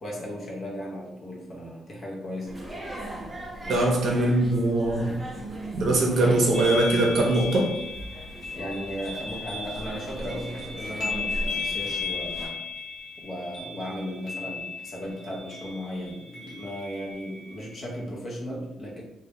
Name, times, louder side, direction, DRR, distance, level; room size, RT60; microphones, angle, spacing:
voice 1, 0.0-2.6 3.6-3.9 8.5-12.6 13.2-19.0, equal, 45° left, -3 dB, 0.6 m, -36 dB
sound 1, 2.5-12.5, right 1 dB, 10° right, 0.6 m, -39 dB
voice 2, 3.7-5.1 5.8-7.7, right 2 dB, 60° right, -1 dB, 0.6 m, -22 dB
sound 2, 6.5-18.0, left 4 dB, 65° left, 1.0 m, -36 dB
2.1 x 2.0 x 2.8 m, 0.91 s
cardioid pair, 90°, 0 cm